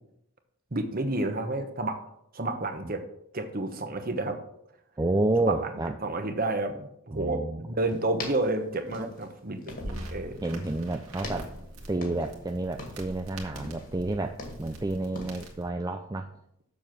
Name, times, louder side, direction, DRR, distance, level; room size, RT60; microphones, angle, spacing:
voice 1, 0.7-2.0 2.3-3.0 3.3-4.4 5.4-5.7 6.0-10.4, right 2 dB, 40° right, 7 dB, 1.1 m, -30 dB
voice 2, 5.0-5.9 7.1-7.6 9.0-9.1 10.4-11.5 11.9-16.3, right 2 dB, 15° right, 5 dB, 0.4 m, -30 dB
sound 1, 7.9-10.2 10.4-10.8 11.1-12.4 12.7-13.2 13.5-14.8 15.1-15.5, left 2 dB, 40° left, 2.0 m, -42 dB
sound 2, 9.7-15.7, right 1 dB, 75° right, 1.9 m, -43 dB
7.2 x 7.0 x 6.0 m, 0.75 s
head